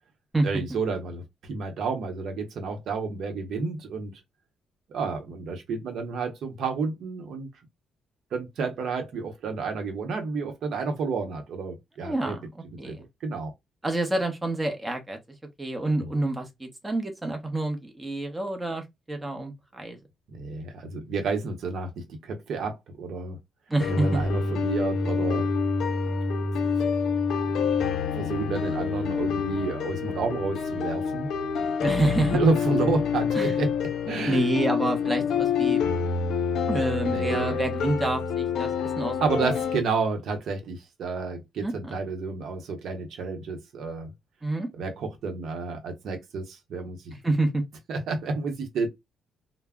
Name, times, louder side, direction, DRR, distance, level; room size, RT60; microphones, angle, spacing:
voice 1, 0.4-1.2 1.5-4.1 4.9-7.5 8.3-12.4 12.8-13.0 13.2-13.5 16.0-16.1 20.3-23.4 23.9-25.4 28.1-31.3 32.2-33.7 34.1-34.5 37.0-37.6 39.2-44.1 44.8-47.0 47.9-48.9, right 4 dB, 70° right, 0.8 m, -30 dB
voice 2, 12.0-12.5 12.8-13.0 13.8-15.2 15.6-20.0 23.7-24.2 31.8-32.4 33.3-33.6 34.3-35.8 36.7-38.7 39.0-39.5 41.6-41.9 44.4-44.7 47.2-47.6, right 2 dB, 15° right, 0.8 m, -28 dB
sound 1, 23.8-39.8, left 6 dB, 75° left, 0.4 m, -27 dB
2.2 x 2.0 x 3.5 m
cardioid pair, 90°, 0 cm